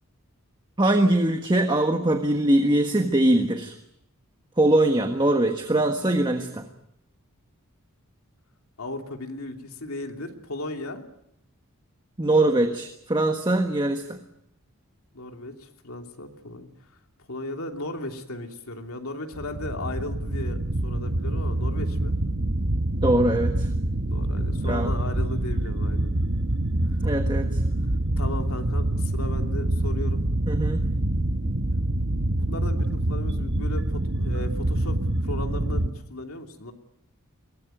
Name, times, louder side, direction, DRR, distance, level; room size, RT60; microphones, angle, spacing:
voice 1, 0.8-3.7 4.6-6.7 12.2-14.2 23.0-23.7 24.6-24.9 27.0-27.6 30.5-30.9, right 1 dB, 20° right, 5 dB, 1.4 m, -22 dB
voice 2, 8.8-11.0 15.1-16.7 17.3-20.6 20.8-22.2 24.1-26.1 28.2-30.3 32.1-35.0 35.2-36.7, left 2 dB, 75° left, 3 dB, 3.0 m, -36 dB
sound 1, 19.3-35.9, right 1 dB, 50° right, 1.2 m, -26 dB
22.5 x 19.0 x 9.2 m, 0.81 s
head